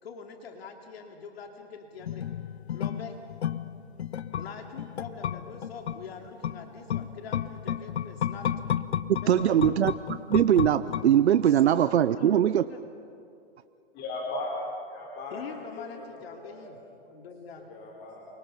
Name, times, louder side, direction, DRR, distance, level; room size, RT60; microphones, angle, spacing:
voice 1, 0.0-2.3 2.7-3.2 4.4-8.5 9.2-9.8 11.4-11.8 12.1-12.8 15.3-16.8 17.1-17.7, left 5 dB, 70° left, 2.9 m, -44 dB
sound 1, 2.0-11.6 11.9-12.0, left 9 dB, 85° left, 0.9 m, -33 dB
voice 2, 9.3-12.6, right 10 dB, 85° right, 0.7 m, -22 dB
voice 3, 13.9-14.6 14.9-15.4 15.7-15.9 16.4-16.7 17.7-18.3, left 2 dB, 30° left, 3.8 m, -37 dB
28.5 x 24.5 x 5.7 m
hypercardioid pair, 135°, 32 cm